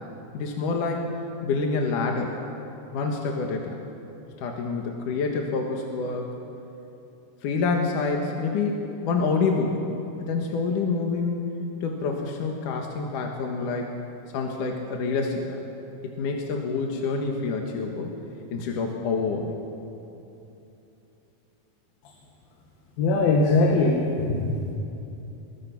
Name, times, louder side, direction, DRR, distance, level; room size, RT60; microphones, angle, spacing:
voice 1, 0.3-1.0 1.4-2.3 2.9-3.7 4.4-6.4 7.4-9.8 10.2-11.4 11.8-14.0 14.3-15.6 16.2-18.1 18.5-19.5, left 4 dB, 65° left, 1 dB, 3.0 m, -27 dB
voice 2, 23.0-24.7, left 2 dB, 90° left, 1 dB, 3.5 m, -21 dB
27.5 x 21.0 x 6.0 m, 2.9 s
omnidirectional pair, 4.0 m